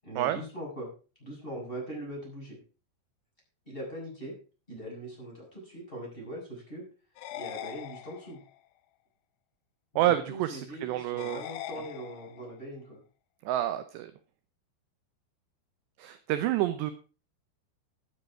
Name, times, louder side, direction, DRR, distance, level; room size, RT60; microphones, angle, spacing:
voice 1, 0.0-0.9 1.2-2.6 3.7-4.3 4.7-6.8 7.3-8.4 9.9-13.0, right 1 dB, 10° left, -3 dB, 7.5 m, -41 dB
sound 1, 7.2-8.6 11.2-12.6, left 13 dB, 90° left, 3.7 m, -42 dB
voice 2, 10.0-11.4 13.5-14.1 16.0-16.9, right 13 dB, 75° right, 10 dB, 2.6 m, -28 dB
12.5 x 10.5 x 4.9 m, 0.34 s
omnidirectional pair, 5.8 m